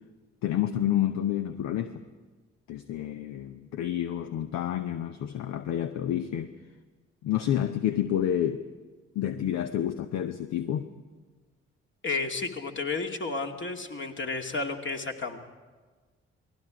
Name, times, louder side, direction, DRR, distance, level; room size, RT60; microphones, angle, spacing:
voice 1, 0.4-2.0 2.7-6.5 7.2-8.6 9.1-10.9, left 11 dB, 55° left, 10 dB, 0.8 m, -29 dB
voice 2, 12.0-15.5, left 3 dB, 35° left, 4 dB, 2.2 m, -32 dB
28.5 x 20.0 x 5.0 m, 1.4 s
figure-of-eight pair, 40°, 32 cm